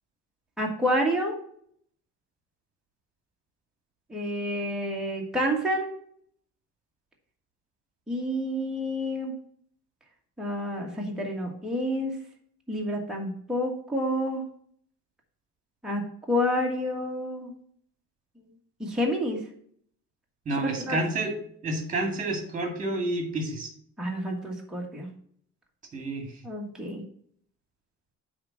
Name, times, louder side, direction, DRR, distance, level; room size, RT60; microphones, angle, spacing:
voice 1, 0.6-1.4 4.1-5.8 8.1-9.3 10.4-12.1 12.7-14.4 15.8-16.0 16.3-17.5 18.8-19.4 20.6-21.0 24.0-25.1 26.4-27.0, equal, ahead, -2 dB, 1.5 m, -29 dB
voice 2, 20.5-21.3 21.6-23.7 25.9-26.3, right 2 dB, 25° right, 3 dB, 2.1 m, -29 dB
8.7 x 3.5 x 5.8 m, 0.62 s
cardioid pair, 160°, 30 cm